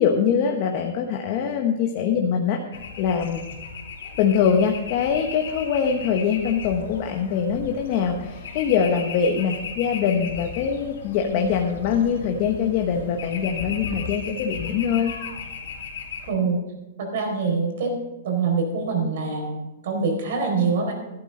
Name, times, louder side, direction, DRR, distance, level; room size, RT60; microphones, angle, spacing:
voice 1, 0.0-3.4 4.2-15.1, left 7 dB, 35° left, 2 dB, 1.1 m, -23 dB
sound 1, 2.7-16.3, left 5 dB, 70° left, 2.7 m, -36 dB
voice 2, 16.3-16.6 17.0-17.9 18.2-20.9, right 4 dB, 55° right, 2 dB, 4.1 m, -24 dB
14.0 x 12.0 x 3.9 m, 1.1 s
hypercardioid pair, 170°, 0 cm